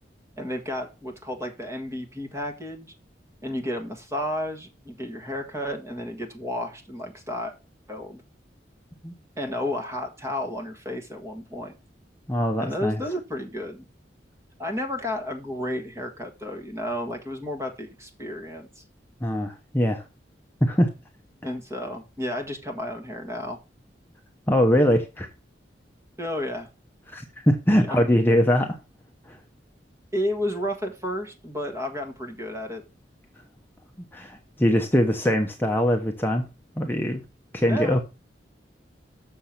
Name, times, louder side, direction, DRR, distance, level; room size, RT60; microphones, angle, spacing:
voice 1, 0.4-2.9 3.4-7.5 7.9-8.2 9.4-11.7 12.6-13.9 14.6-18.8 21.4-23.6 26.2-26.7 27.8-28.1 30.1-32.8 37.7-38.0, left 1 dB, 15° right, 1.6 m, -32 dB
voice 2, 12.3-13.0 19.2-20.0 20.6-20.9 24.5-25.3 27.1-28.8 29.3-29.4 34.1-36.4 36.8-37.2 37.5-38.0, equal, 10° left, 0.8 m, -22 dB
6.9 x 6.6 x 5.8 m
head